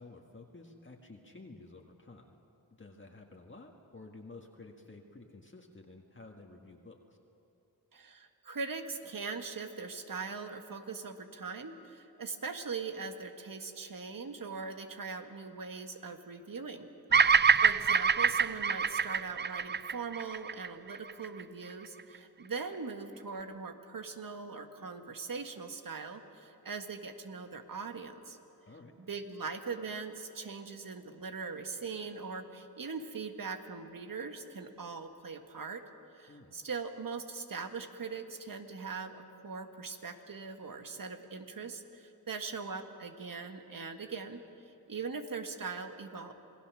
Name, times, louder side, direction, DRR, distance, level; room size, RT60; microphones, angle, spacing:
voice 1, 0.0-2.4 2.8-7.2 17.1-17.3 28.7-29.0 36.3-36.5, left 3 dB, 30° left, 1 dB, 1.7 m, -52 dB
voice 2, 7.9-16.9 17.2-28.4 29.0-35.8 36.1-46.3, right 4 dB, 60° right, 6 dB, 1.7 m, -41 dB
Bird vocalization bird call bird song, 17.1-21.4, right 6 dB, 30° right, 0.4 m, -26 dB
27.5 x 19.0 x 6.3 m, 2.9 s
wide cardioid pair, 70°, 37 cm